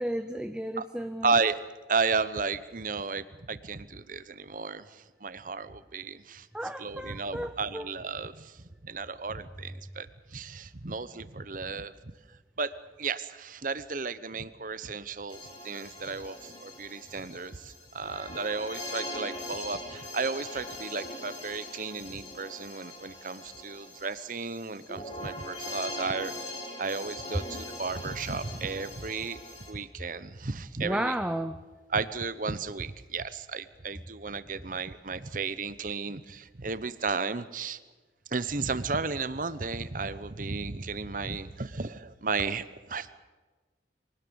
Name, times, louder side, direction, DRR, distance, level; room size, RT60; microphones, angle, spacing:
voice 1, 0.0-1.3 6.5-7.9 30.8-31.6, right 1 dB, 5° right, 9 dB, 0.6 m, -33 dB
voice 2, 1.2-1.6 1.9-6.5 6.8-12.1 12.6-26.5 26.8-29.4 29.7-31.2 31.9-37.8 38.3-43.2, right 4 dB, 50° right, 14 dB, 1.0 m, -34 dB
sound 1, 15.3-29.7, left 1 dB, 30° left, 5.1 m, -41 dB
24.0 x 18.5 x 7.1 m, 1.3 s
head